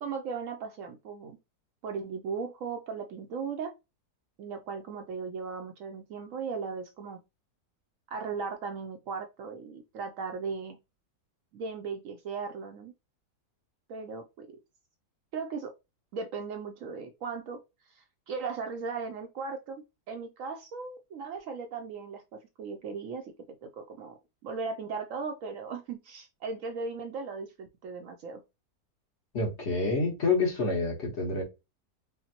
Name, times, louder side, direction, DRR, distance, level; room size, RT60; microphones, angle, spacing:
voice 1, 0.0-1.4 1.8-3.7 4.4-7.2 8.1-10.8 11.5-12.9 13.9-14.5 15.3-15.7 16.1-23.3 23.6-28.4, right 5 dB, 70° right, 5 dB, 0.8 m, -37 dB
voice 2, 29.3-31.4, left 3 dB, 50° left, 0 dB, 1.3 m, -28 dB
5.6 x 2.1 x 2.8 m, 0.24 s
omnidirectional pair, 1.6 m